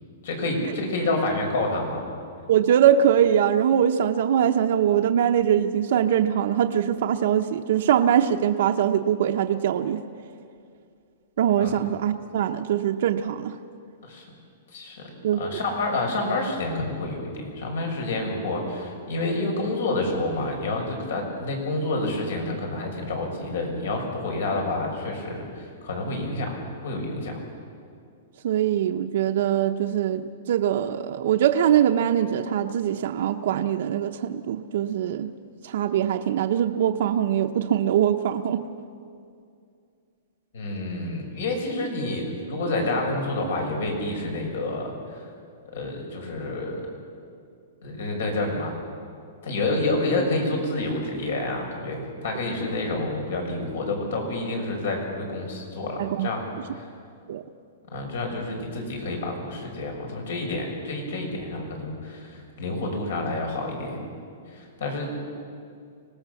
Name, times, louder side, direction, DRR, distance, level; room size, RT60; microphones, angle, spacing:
voice 1, 0.2-2.0 11.6-11.7 14.0-14.2 14.7-15.1 15.4-27.4 40.5-45.2 45.7-46.9 47.8-48.7 49.4-56.4 56.7-56.9 57.9-64.1 64.5-65.1, left 2 dB, 75° left, 2 dB, 6.4 m, -28 dB
voice 2, 2.5-10.0 11.4-13.6 15.2-15.4 28.4-35.3 35.6-38.7 56.0-56.3 57.3-57.4, right 9 dB, 55° right, 5 dB, 0.8 m, -22 dB
25.5 x 19.0 x 7.1 m, 2.4 s
hypercardioid pair, 170°, 0 cm